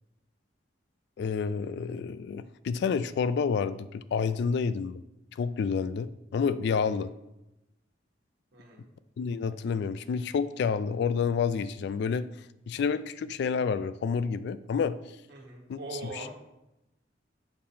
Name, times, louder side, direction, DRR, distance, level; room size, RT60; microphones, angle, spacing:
voice 1, 1.2-5.0 5.3-7.1 9.2-12.3 12.7-15.0 15.7-15.8 16.1-16.3, left 6 dB, 65° left, 14 dB, 0.3 m, -29 dB
voice 2, 8.5-8.9 15.3-16.3, right 3 dB, 65° right, -1 dB, 1.4 m, -42 dB
6.7 x 2.8 x 5.5 m, 0.92 s
head